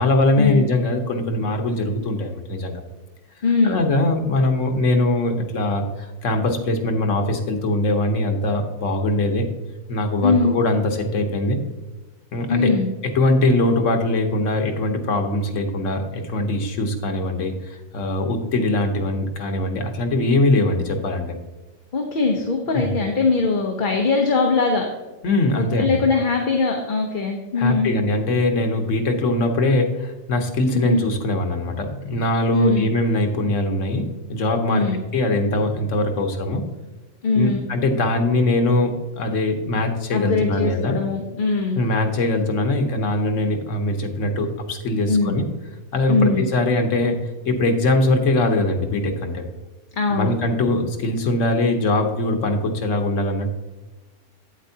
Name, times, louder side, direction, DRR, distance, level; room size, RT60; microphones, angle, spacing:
voice 1, 0.0-2.8 3.6-9.5 9.9-11.6 12.3-12.7 13.1-21.3 22.7-22.9 25.2-26.0 27.6-34.9 35.1-36.6 37.3-41.0 41.7-45.5 45.9-47.2 47.4-49.4 50.1-53.5, left 2 dB, 85° left, 5 dB, 1.4 m, -21 dB
voice 2, 3.4-3.8 10.2-10.5 12.5-12.9 21.9-24.9 25.5-27.9 30.7-31.0 32.5-32.9 34.7-35.0 37.2-37.7 40.1-41.8 45.1-45.4 46.1-46.5 50.0-50.3, left 4 dB, 45° left, 2 dB, 1.0 m, -21 dB
8.8 x 8.1 x 2.8 m, 1.2 s
omnidirectional pair, 1.3 m